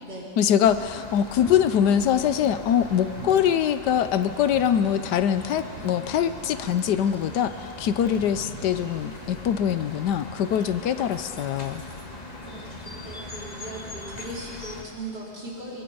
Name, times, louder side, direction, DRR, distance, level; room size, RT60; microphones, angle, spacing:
voice 1, 0.4-11.8, left 9 dB, 75° left, 12 dB, 1.3 m, -23 dB
sound 1, 0.6-14.8, left 2 dB, 25° left, 1.7 m, -40 dB
Thunder, 1.3-15.1, right 1 dB, 35° right, 3.1 m, -47 dB
voice 2, 11.8-15.8, right 1 dB, 75° right, -6 dB, 5.0 m, -39 dB
22.5 x 22.5 x 5.5 m, 2.5 s
omnidirectional pair, 1.8 m